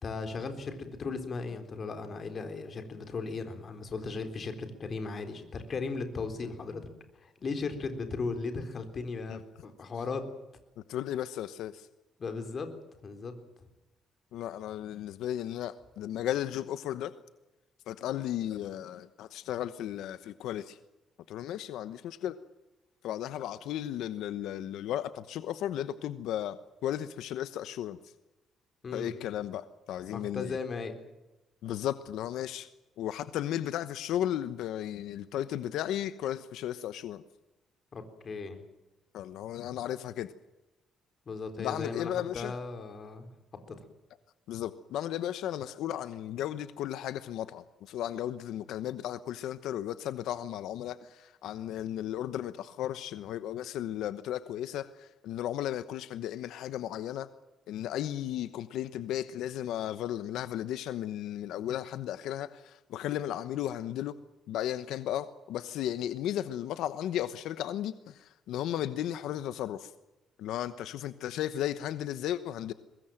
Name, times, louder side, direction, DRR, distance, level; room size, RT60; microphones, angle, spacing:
voice 1, 0.0-6.8 7.1-10.2 12.2-12.7 13.0-13.3 28.8-29.1 30.1-31.0 37.9-38.6 41.3-43.3 43.7-43.8, left 4 dB, 35° left, 3.9 m, -37 dB
voice 2, 10.8-11.9 14.3-17.1 17.9-20.8 21.3-22.3 23.0-28.1 28.9-30.6 31.6-32.7 33.0-37.2 39.1-40.3 41.6-42.5 44.5-57.3 57.7-64.1 64.5-69.9 70.4-72.7, left 11 dB, 90° left, 1.0 m, -35 dB
23.5 x 20.5 x 7.8 m
cardioid pair, 145°, 0 cm